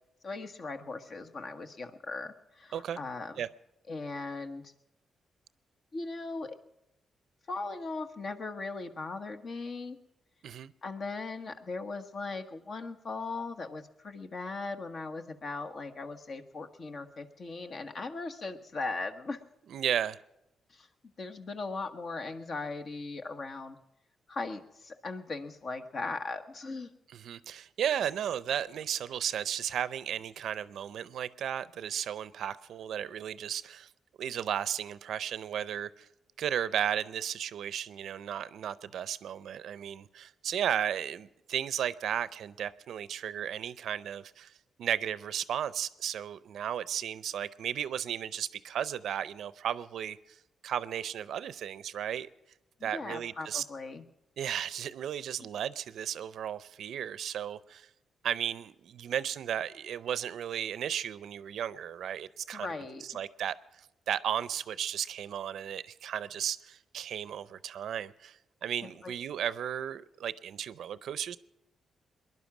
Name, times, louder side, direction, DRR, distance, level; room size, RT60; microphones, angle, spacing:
voice 1, 0.2-3.4 3.9-4.7 5.9-6.6 7.5-10.0 10.8-19.4 20.7-20.9 21.2-23.8 24.3-26.9 52.8-54.0 62.5-63.0 68.8-69.1, left 3 dB, 55° left, 1.2 m, -38 dB
voice 2, 19.7-20.2 27.1-33.9 34.2-36.1 36.4-44.5 44.8-50.4 50.6-52.3 52.8-53.6 54.4-57.9 58.2-62.7 63.1-71.4, right 9 dB, 75° right, 0.5 m, -34 dB
21.0 x 11.0 x 6.0 m
cardioid pair, 80°, 0 cm